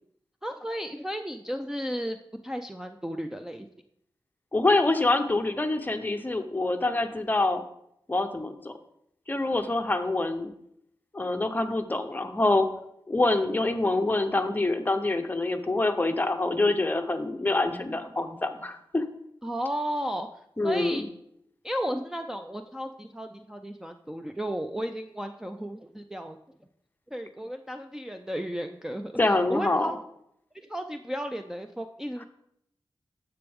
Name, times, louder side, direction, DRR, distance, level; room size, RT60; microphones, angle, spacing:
voice 1, 0.4-2.2 2.4-3.7 19.4-20.3 20.6-21.0 21.6-26.4 27.1-29.1 29.5-30.0 30.5-32.2, equal, 5° right, 4 dB, 0.4 m, -34 dB
voice 2, 4.5-7.6 8.1-8.7 9.3-10.5 11.1-12.7 13.1-19.0 20.6-21.1 29.2-29.9, left 2 dB, 20° left, 7 dB, 0.7 m, -26 dB
9.9 x 7.0 x 3.5 m, 0.76 s
wide cardioid pair, 115°, 9 cm